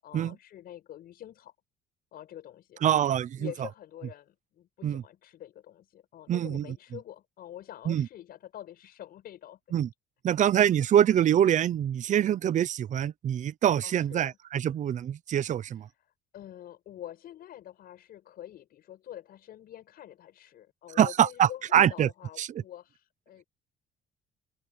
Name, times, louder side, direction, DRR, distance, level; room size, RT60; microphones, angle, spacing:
voice 1, 0.0-1.5 2.1-2.8 3.4-9.8 13.8-14.3 15.6-23.4, left 11 dB, 65° left, 7.2 m, -46 dB
voice 2, 2.8-3.5 4.8-5.0 6.3-6.6 7.9-8.1 9.7-9.9 10.2-15.9 21.0-22.1 22.4-22.5, right 10 dB, 45° right, 0.7 m, -24 dB
open air
cardioid pair, 110°, 17 cm